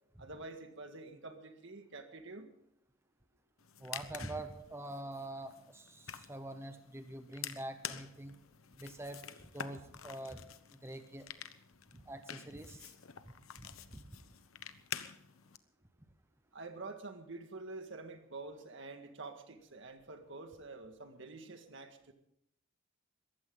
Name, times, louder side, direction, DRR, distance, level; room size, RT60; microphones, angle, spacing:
voice 1, 0.2-2.5 16.5-22.1, right 3 dB, 65° right, 6 dB, 1.9 m, -47 dB
sound 1, 3.6-15.6, left 9 dB, 90° left, 1.0 m, -48 dB
voice 2, 3.8-8.4 8.7-9.2 9.5-10.4 10.7-11.3 11.9-12.9 13.6-14.0, right 1 dB, 15° right, 8 dB, 0.9 m, -45 dB
21.5 x 15.0 x 3.9 m, 0.76 s
head